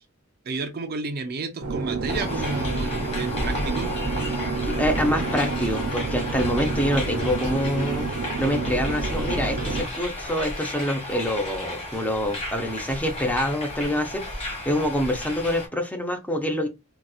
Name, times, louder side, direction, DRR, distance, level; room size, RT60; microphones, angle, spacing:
voice 1, 0.5-3.9, right 3 dB, 45° right, 0.5 m, -31 dB
sound 1, 1.6-9.8, right 3 dB, 85° right, 0.8 m, -29 dB
sound 2, 2.1-15.7, left 1 dB, 30° left, 1.3 m, -33 dB
voice 2, 4.6-8.1 8.4-16.7, equal, 5° left, 0.6 m, -26 dB
4.1 x 2.3 x 2.3 m
head